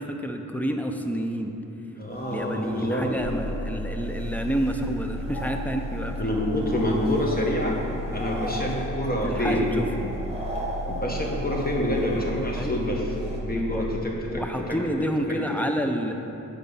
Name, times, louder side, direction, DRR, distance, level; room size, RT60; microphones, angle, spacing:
voice 1, 0.0-1.5 2.2-6.3 9.2-9.9 12.5-13.0 13.5-13.8 14.3-16.1, equal, 5° left, 4 dB, 0.5 m, -29 dB
voice 2, 2.0-3.1 6.1-7.8 8.1-9.7 10.9-13.0 13.4-14.4 15.3-15.4, left 1 dB, 30° left, -2 dB, 1.2 m, -27 dB
sound 1, 2.1-13.4, right 1 dB, 20° right, 1.1 m, -39 dB
sound 2, 3.2-14.0, equal, 50° left, 0.6 m, -34 dB
7.8 x 5.1 x 5.5 m, 3.0 s
wide cardioid pair, 110°, 32 cm